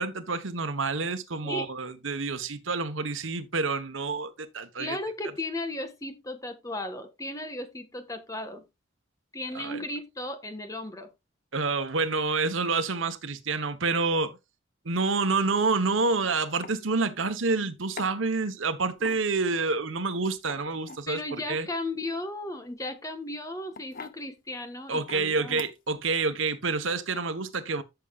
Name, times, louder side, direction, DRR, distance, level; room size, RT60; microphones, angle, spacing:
voice 1, 0.0-5.0 9.5-9.8 11.5-14.4 14.8-21.7 24.9-27.8, right 4 dB, 80° right, 1.2 m, -28 dB
voice 2, 4.8-8.6 9.3-11.1 21.1-25.6, left 2 dB, 15° left, 1.5 m, -35 dB
sound 1, 15.9-16.1 16.6-16.8 18.0-18.1 18.9-19.5 20.4-21.1 22.7-23.0 23.7-24.2 25.1-25.2 25.5-26.0, left 5 dB, 45° left, 0.6 m, -42 dB
13.5 x 7.0 x 2.5 m
head